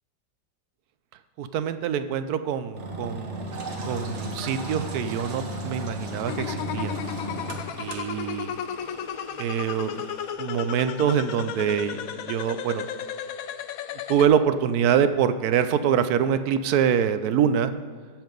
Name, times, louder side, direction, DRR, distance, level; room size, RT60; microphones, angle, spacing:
voice 1, 1.4-3.5 3.9-7.0 7.8-8.5 9.4-10.0 10.4-12.9 14.1-17.7, right 8 dB, 70° right, 11 dB, 0.9 m, -25 dB
Engine, 2.7-10.3, right 1 dB, 45° right, 1.3 m, -35 dB
sound 1, 6.3-14.3, left 9 dB, 75° left, 0.8 m, -34 dB
15.0 x 5.8 x 5.2 m, 1.5 s
omnidirectional pair, 2.0 m